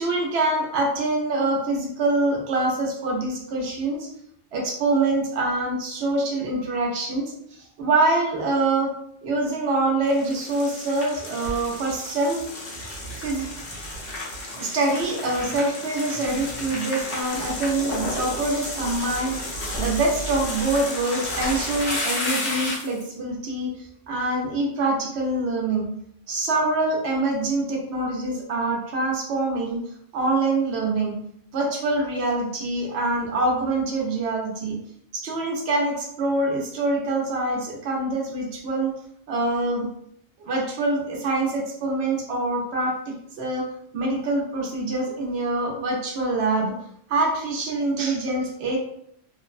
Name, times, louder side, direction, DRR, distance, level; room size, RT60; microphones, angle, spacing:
voice 1, 0.0-4.1 4.5-7.3 7.8-8.9 9.2-12.5 13.2-13.5 14.6-23.7 24.1-25.9 26.3-29.8 30.1-31.2 31.5-34.8 35.1-38.9 39.3-39.9 40.4-43.6 43.9-46.7 47.1-48.8, right 2 dB, 75° right, -1 dB, 0.9 m, -25 dB
sound 1, 10.0-23.0, left 1 dB, 60° left, 0.9 m, -32 dB
2.9 x 2.0 x 2.4 m, 0.70 s
omnidirectional pair, 1.1 m